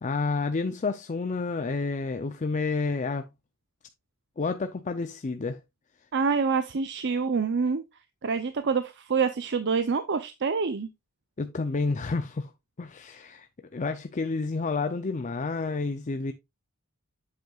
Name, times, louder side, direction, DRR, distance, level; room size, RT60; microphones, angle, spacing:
voice 1, 0.0-3.2 4.4-5.6 11.4-12.5 12.8-13.5 13.7-16.3, left 3 dB, 35° left, 0.5 m, -29 dB
voice 2, 6.1-7.8 8.2-10.9, right 5 dB, 50° right, 0.6 m, -26 dB
8.0 x 7.7 x 2.4 m
head